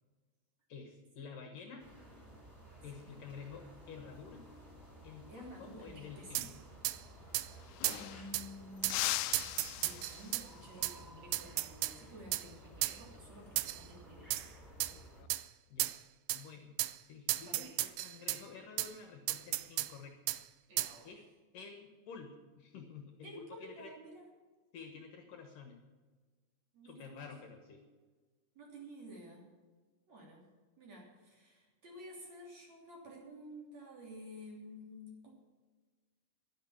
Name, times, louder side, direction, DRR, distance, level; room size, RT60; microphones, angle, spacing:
voice 1, 0.7-1.9 2.8-4.4 5.0-6.6 15.7-15.9 16.3-16.8 17.1-20.2 21.0-21.2 21.5-23.9 24.7-25.8 26.8-27.8, left 5 dB, 65° left, 4 dB, 2.5 m, -50 dB
sound 1, 1.8-15.2, right 1 dB, 10° right, 4.7 m, -55 dB
voice 2, 5.3-6.6 7.9-9.0 9.8-14.4 17.5-17.7 20.7-21.1 23.2-24.2 26.7-27.3 28.6-29.5 30.1-30.4 30.8-35.3, equal, 45° right, -2 dB, 4.0 m, -52 dB
sound 2, 6.3-6.5 6.8-7.0 7.3-7.5 7.8-8.0 8.3-8.5 8.8-9.0 9.3-10.5 10.8-11.0 11.3-12.0 12.3-12.5 12.8-13.0 13.6-13.8 14.3-14.5 14.8-14.9 15.3-15.4 15.8-16.0 16.3-16.4 16.8-16.9 17.3-18.4 18.8-18.9 19.3-19.9 20.3-20.4 20.8-20.9, right 17 dB, 85° right, 2.1 m, -34 dB
sound 3, 7.2-7.3 7.5-8.4 8.8-10.6 13.1-13.4 14.8-15.3, left 17 dB, 85° left, 2.7 m, -39 dB
11.5 x 10.5 x 7.1 m, 1.4 s
omnidirectional pair, 4.8 m